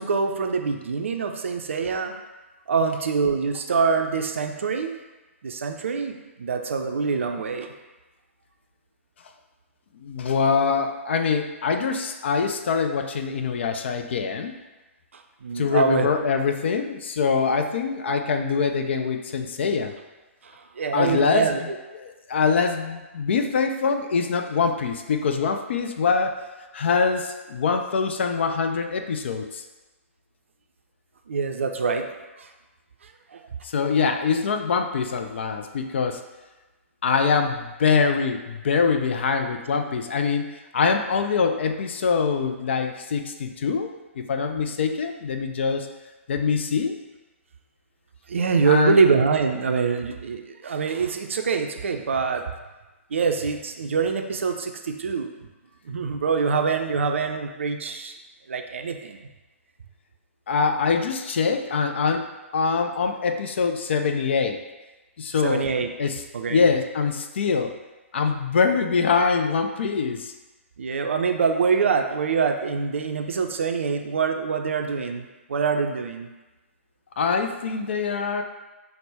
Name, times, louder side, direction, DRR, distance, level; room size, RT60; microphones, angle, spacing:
voice 1, 0.0-2.1 2.7-4.9 5.4-7.7 15.1-16.1 20.4-21.8 31.3-32.1 32.4-32.5 33.0-33.4 48.3-52.4 53.1-55.3 55.8-58.1 58.5-59.2 65.4-65.9 66.3-66.7 70.8-76.3, right 5 dB, 65° right, 5 dB, 0.4 m, -25 dB
voice 2, 10.0-14.5 15.6-19.9 20.9-21.7 22.0-26.4 26.7-29.6 33.6-36.2 37.0-45.9 46.3-46.9 48.7-49.0 60.5-64.6 65.2-65.7 66.0-66.2 66.5-67.7 68.1-70.3 77.2-78.4, left 5 dB, 55° left, 6 dB, 0.4 m, -24 dB
5.8 x 2.1 x 3.4 m, 1.1 s
figure-of-eight pair, 120°, 7 cm